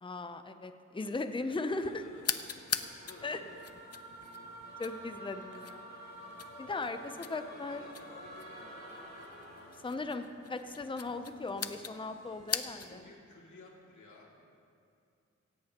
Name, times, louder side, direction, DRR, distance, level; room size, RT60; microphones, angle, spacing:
voice 1, 0.0-2.0 3.2-3.4 4.8-5.9 6.6-7.0 7.3-7.8 9.8-13.0, left 3 dB, 15° left, 8 dB, 0.6 m, -38 dB
voice 2, 1.0-3.7 4.3-4.4 6.8-9.0 12.9-14.3, left 2 dB, 80° left, -3 dB, 2.5 m, -55 dB
sound 1, 1.7-13.0, right 2 dB, 60° right, 1.5 m, -60 dB
sound 2, 2.2-13.1, left 7 dB, 55° left, 0.6 m, -42 dB
sound 3, 2.7-10.0, right 1 dB, 30° left, 2.3 m, -49 dB
16.5 x 16.5 x 2.9 m, 2.4 s
wide cardioid pair, 105°, 30 cm